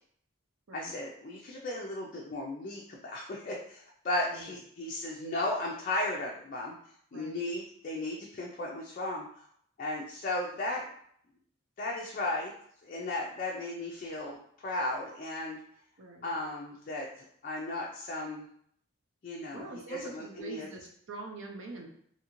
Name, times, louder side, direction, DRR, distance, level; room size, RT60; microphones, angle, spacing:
voice 1, 0.7-6.7 7.1-9.3 9.8-10.8 11.8-12.5 12.8-15.6 16.2-18.4 19.2-20.7, left 1 dB, 40° left, -2 dB, 0.3 m, -35 dB
voice 2, 16.0-16.3 19.5-21.9, right 3 dB, 65° right, 2 dB, 0.6 m, -44 dB
2.7 x 2.4 x 2.9 m, 0.66 s
head